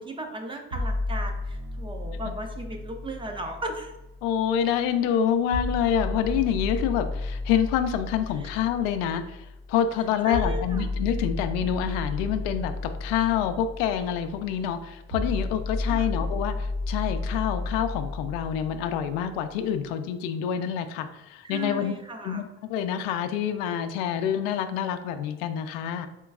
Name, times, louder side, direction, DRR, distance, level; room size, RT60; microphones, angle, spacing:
voice 1, 0.0-3.9 8.4-8.5 10.2-10.9 15.9-16.1 21.4-22.4, right 1 dB, 15° right, 3 dB, 0.5 m, -36 dB
sound 1, 0.7-4.7 5.5-19.5, left 2 dB, 65° right, 1.3 m, -33 dB
voice 2, 4.2-21.9 22.2-26.1, left 9 dB, 80° left, 8 dB, 0.5 m, -27 dB
4.4 x 3.0 x 2.3 m, 1.0 s
supercardioid pair, 110°, 30 cm